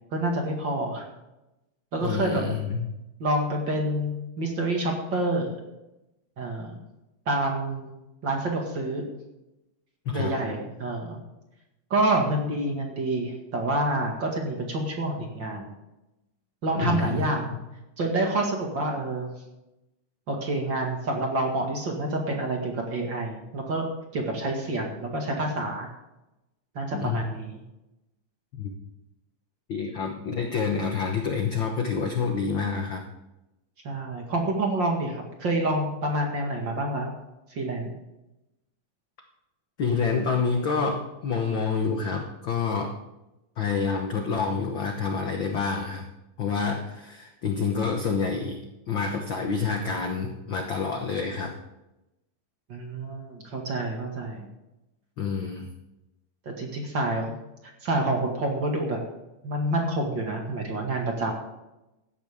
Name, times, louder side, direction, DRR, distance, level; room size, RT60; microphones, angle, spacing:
voice 1, 0.1-1.1 1.9-2.5 3.2-4.1 4.4-5.5 6.4-6.8 7.3-7.9 8.2-9.0 10.1-11.2 11.9-15.7 16.6-17.6 18.0-19.3 20.3-23.8 24.1-25.9 26.8-27.6 33.8-37.1 37.5-37.9 52.7-54.5 56.5-57.3 57.8-59.0 59.4-61.3, right 2 dB, 40° right, 1 dB, 2.1 m, -28 dB
voice 2, 2.0-2.9 10.0-10.4 16.8-17.4 26.9-27.2 28.5-28.7 29.7-33.0 39.8-42.9 43.6-46.1 46.4-48.6 48.9-51.5 55.2-55.7, left 5 dB, 80° left, 3 dB, 1.0 m, -28 dB
16.0 x 12.5 x 3.6 m, 0.95 s
omnidirectional pair, 3.9 m